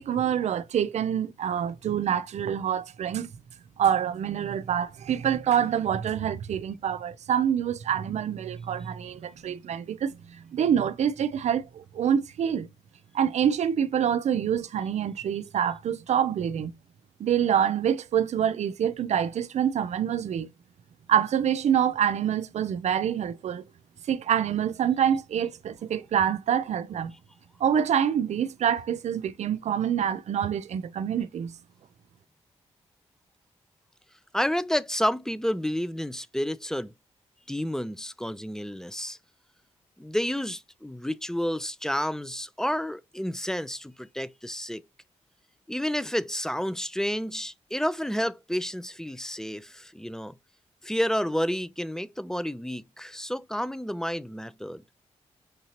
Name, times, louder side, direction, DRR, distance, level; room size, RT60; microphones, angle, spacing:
voice 1, 0.0-3.3 3.8-12.7 13.1-16.7 17.2-20.5 21.1-23.6 24.1-27.1 27.6-31.5, right 9 dB, 70° right, 0.5 m, -26 dB
voice 2, 34.3-36.9 37.5-39.2 40.0-44.8 45.7-50.3 50.8-54.8, equal, 5° left, 0.4 m, -30 dB
6.5 x 2.7 x 2.9 m
cardioid pair, 60°, 12 cm